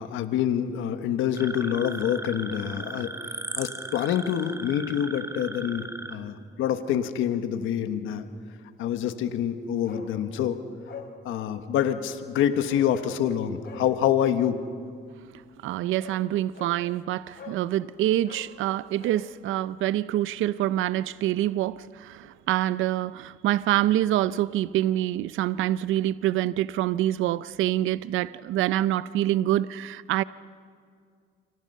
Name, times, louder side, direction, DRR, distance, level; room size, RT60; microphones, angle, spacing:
voice 1, 0.0-3.1 3.6-8.2 8.8-10.6 11.2-14.6, left 9 dB, 90° left, 9 dB, 1.3 m, -26 dB
sound 1, 1.3-6.2, right 2 dB, 15° right, 1.8 m, -37 dB
Bark, 9.8-10.1 10.4-10.5 10.8-11.1 11.7-12.0 12.6-12.9 13.6-13.9 15.5-15.6 16.0-16.2 16.5-16.8 17.3-17.6 18.2-19.2 19.5-19.6, left 7 dB, 55° left, 3.5 m, -44 dB
voice 2, 15.6-30.2, right 13 dB, 85° right, 17 dB, 0.5 m, -26 dB
29.0 x 25.5 x 5.6 m, 2.2 s
cardioid pair, 90°, 20 cm